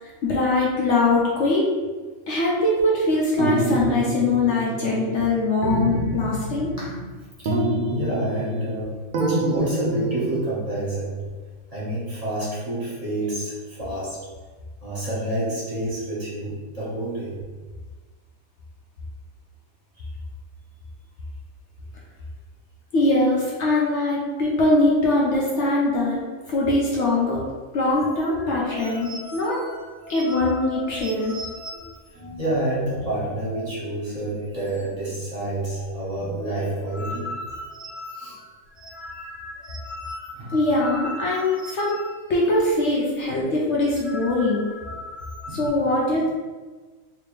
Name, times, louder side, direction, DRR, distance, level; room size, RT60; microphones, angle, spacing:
voice 1, 0.0-1.7 2.3-6.7 22.9-26.2 26.5-27.4 27.7-29.6 30.1-31.3 40.5-42.0 42.3-44.6 45.5-46.3, left 2 dB, 65° left, -4 dB, 0.9 m, -22 dB
sound 1, 3.4-5.3 5.6-7.1 7.4-8.8 9.1-10.5, right 1 dB, 90° right, 0.4 m, -26 dB
voice 2, 7.9-11.2 11.7-14.2 14.8-17.4 32.4-37.4 38.1-38.4 40.3-40.6 43.3-43.4 44.5-44.6 45.5-45.7 46.1-46.2, right 1 dB, 30° right, -10 dB, 1.4 m, -29 dB
sound 2, 27.9-33.9 34.1-34.3 34.6-35.1 35.4-42.8 43.0-43.2 43.7-45.7, left 1 dB, 10° left, 0.6 m, -39 dB
3.2 x 3.0 x 3.1 m, 1.3 s
omnidirectional pair, 1.4 m